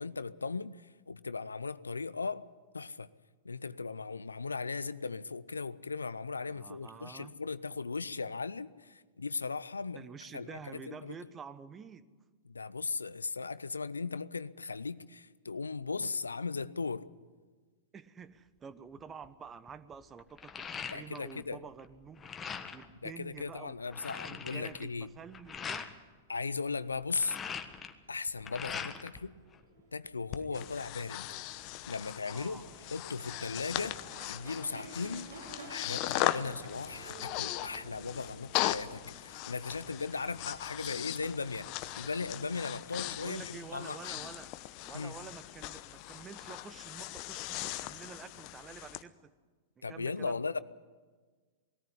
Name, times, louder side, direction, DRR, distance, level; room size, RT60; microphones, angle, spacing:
voice 1, 0.0-2.5 2.7-3.1 3.4-10.0 10.3-11.2 12.4-17.1 20.9-21.6 23.0-25.1 26.3-27.4 28.1-29.4 29.9-31.3 31.9-32.6 32.9-34.0 34.3-35.3 35.7-41.7 42.0-44.1 44.9-45.1 49.8-50.6, left 4 dB, 90° left, 0.5 m, -37 dB
voice 2, 6.4-7.3 9.9-12.1 17.9-22.3 22.7-26.0 28.9-29.1 30.4-30.7 32.3-32.9 36.1-36.5 40.2-40.3 42.9-44.5 44.8-49.3 49.8-50.4, right 6 dB, 25° right, 1.1 m, -49 dB
sound 1, 19.0-19.3 19.7-21.4 21.7-22.9 23.4-23.5 23.7-25.9 26.9-29.2 29.5-30.4, left 6 dB, 20° left, 1.5 m, -42 dB
sound 2, 29.1-42.7, right 3 dB, 80° right, 4.2 m, -53 dB
Breathing, 30.3-49.0, left 16 dB, 45° left, 0.9 m, -39 dB
20.5 x 14.0 x 9.9 m
hypercardioid pair, 100°, 0 cm